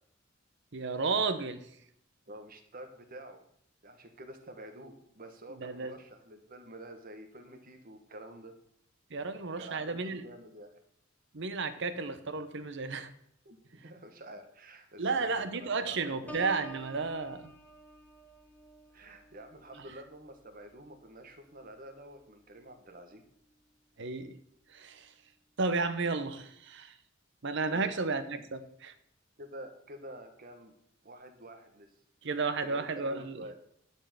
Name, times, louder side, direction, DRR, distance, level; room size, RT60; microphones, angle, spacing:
voice 1, 0.7-1.6 5.5-5.9 9.1-10.2 11.3-13.1 15.0-17.5 24.0-24.4 24.7-25.1 25.6-27.0 27.4-28.9 32.2-33.4, right 4 dB, 65° right, 11 dB, 0.8 m, -33 dB
voice 2, 2.3-3.4 3.8-8.5 9.6-10.7 13.4-16.4 18.9-23.2 27.7-27.9 28.3-28.4 29.4-30.7 31.0-31.9 32.6-33.5, right 1 dB, 45° right, 5 dB, 1.3 m, -48 dB
Piano, 16.3-21.9 22.4-22.7, equal, 10° left, 1.0 m, -50 dB
11.0 x 4.5 x 7.4 m, 0.72 s
head